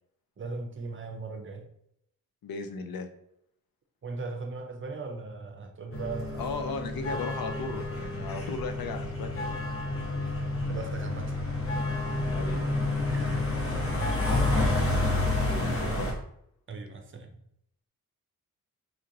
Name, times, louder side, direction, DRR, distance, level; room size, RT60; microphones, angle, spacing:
voice 1, 0.4-1.7 4.0-6.5 10.2-10.3 10.7-11.8 13.1-14.8 16.7-17.4, right 3 dB, 35° right, 5 dB, 0.5 m, -39 dB
voice 2, 2.4-3.1 6.4-9.5 12.3-12.6 15.4-16.1, left 4 dB, 70° left, 6 dB, 0.6 m, -36 dB
sound 1, 5.9-16.1, left 2 dB, 40° left, 0.8 m, -29 dB
4.2 x 2.9 x 2.5 m, 0.74 s
wide cardioid pair, 130°, 36 cm